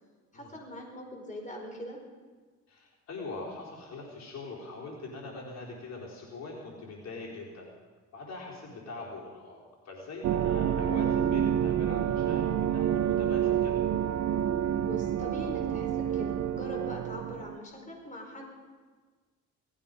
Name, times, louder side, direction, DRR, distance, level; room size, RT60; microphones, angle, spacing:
voice 1, 0.3-2.0 14.7-18.4, left 1 dB, 25° left, 0 dB, 4.8 m, -42 dB
voice 2, 2.7-7.7 8.1-13.8, left 3 dB, 60° left, -4 dB, 4.0 m, -42 dB
sound 1, 10.2-17.6, right 10 dB, 60° right, 0.7 m, -28 dB
sound 2, 10.4-16.5, right 1 dB, 15° right, 4.7 m, -46 dB
18.0 x 15.0 x 5.3 m, 1.4 s
cardioid pair, 90°, 30 cm